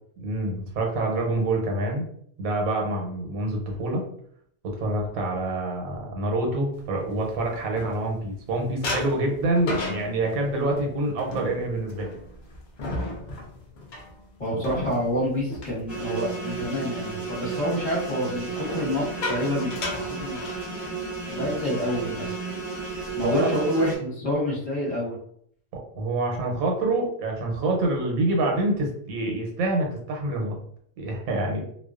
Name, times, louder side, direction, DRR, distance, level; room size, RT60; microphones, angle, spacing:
voice 1, 0.2-2.0 2.4-4.0 4.6-12.1 23.2-23.5 25.9-30.5 31.0-31.6, right 2 dB, 85° right, 1 dB, 1.1 m, -26 dB
sound 1, 7.0-8.4 8.8-16.7 17.0-17.3 18.5-21.1 21.4-21.6 21.9-22.2 22.7-23.4, left 2 dB, 85° left, 0.4 m, -35 dB
voice 2, 14.4-20.7 21.3-22.4 23.2-25.2, equal, 30° left, -5 dB, 0.8 m, -28 dB
sound 2, 15.9-24.0, right 4 dB, ahead, 0.8 m, -33 dB
2.3 x 2.2 x 2.3 m, 0.65 s
omnidirectional pair, 1.4 m